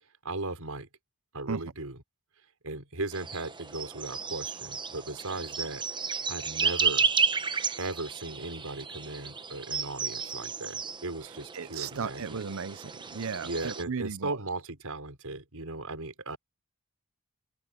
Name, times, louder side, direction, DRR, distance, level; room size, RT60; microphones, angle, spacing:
voice 1, 0.2-0.9 1.3-2.0 2.6-5.8 6.3-7.1 7.8-12.4 13.4-16.4, right 2 dB, 85° right, 5.0 m, -37 dB
sound 1, 3.1-13.8, right 5 dB, 20° right, 1.0 m, -33 dB
voice 2, 11.5-14.4, right 5 dB, 70° right, 0.7 m, -35 dB
head